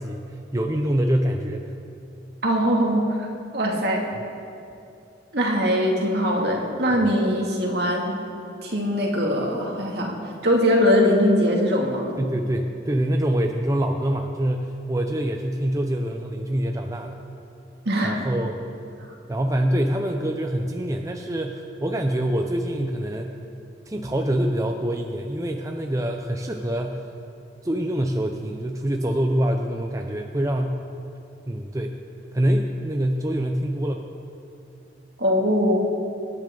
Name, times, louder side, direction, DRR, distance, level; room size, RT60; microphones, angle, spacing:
voice 1, 0.0-1.7 12.2-17.2 18.0-18.5 19.3-23.4 23.9-27.1 27.6-30.8 31.5-31.9 32.3-34.1, right 1 dB, 15° right, 3 dB, 0.6 m, -25 dB
voice 2, 2.4-3.3 3.5-4.1 5.3-8.2 8.6-10.2 10.4-12.1 17.8-18.2 35.2-35.8, equal, 60° right, -1 dB, 2.4 m, -21 dB
25.5 x 11.0 x 3.9 m, 2.7 s
head